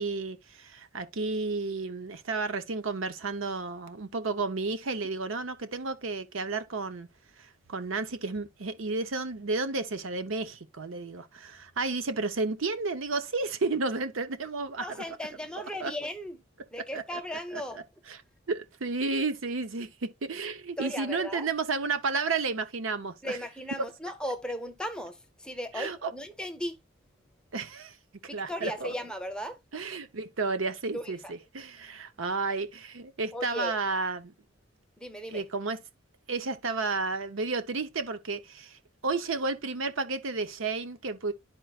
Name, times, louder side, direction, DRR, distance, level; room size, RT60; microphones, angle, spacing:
voice 1, 0.0-7.1 7.4-14.9 15.8-15.9 16.8-17.0 18.1-18.2 18.5-23.4 25.7-26.1 27.5-28.0 28.3-28.9 29.7-34.3 35.3-35.8 36.3-41.3, right 3 dB, 75° right, 0.8 m, -32 dB
voice 2, 14.8-16.4 16.7-17.8 20.8-21.5 23.2-26.8 28.2-29.6 30.9-31.3 33.3-33.8 35.0-35.5, equal, 5° left, 0.8 m, -36 dB
11.5 x 4.5 x 2.4 m
head